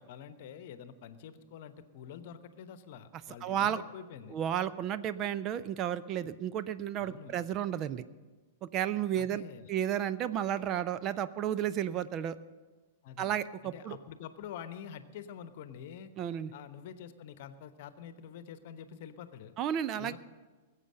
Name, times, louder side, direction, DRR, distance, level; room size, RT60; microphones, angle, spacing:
voice 1, 0.0-4.4 7.0-7.4 9.2-9.7 13.0-13.3 13.6-16.1 16.5-19.5 20.0-20.2, left 8 dB, 50° left, 12 dB, 1.0 m, -47 dB
voice 2, 3.4-3.8 4.3-8.0 8.6-9.4 9.7-12.4 13.2-14.0 16.2-16.5 19.6-20.2, right 10 dB, 30° right, 14 dB, 0.5 m, -32 dB
20.5 x 8.2 x 6.5 m, 1.3 s
figure-of-eight pair, 100°, 0 cm